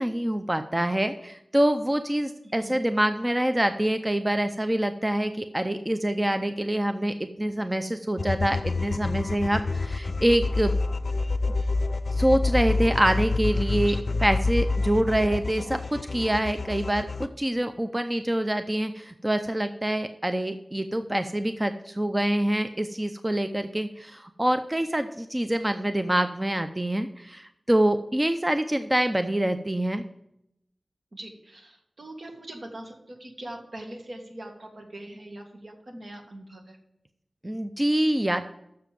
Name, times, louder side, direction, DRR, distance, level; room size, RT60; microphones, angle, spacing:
voice 1, 0.0-10.7 12.1-14.0 14.2-30.0 37.4-38.5, right 1 dB, 20° right, 9 dB, 0.5 m, -25 dB
voice 2, 2.4-2.8 13.9-14.1 17.6-17.7 31.1-36.8, right 1 dB, 65° right, 2 dB, 1.9 m, -42 dB
sound 1, 8.2-17.3, left 3 dB, 65° left, 0.5 m, -28 dB
7.1 x 6.8 x 7.4 m, 0.80 s
wide cardioid pair, 55°, 0 cm